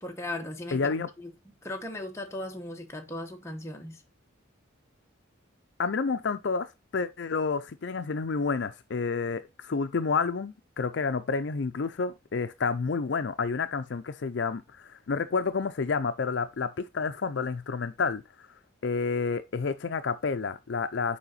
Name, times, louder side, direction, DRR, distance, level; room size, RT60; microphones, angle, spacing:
voice 1, 0.0-1.3 1.6-4.0, left 1 dB, 15° left, 1.1 m, -37 dB
voice 2, 0.7-1.1 5.8-18.2 18.8-21.2, left 4 dB, 60° left, 0.5 m, -29 dB
7.2 x 4.9 x 3.9 m
head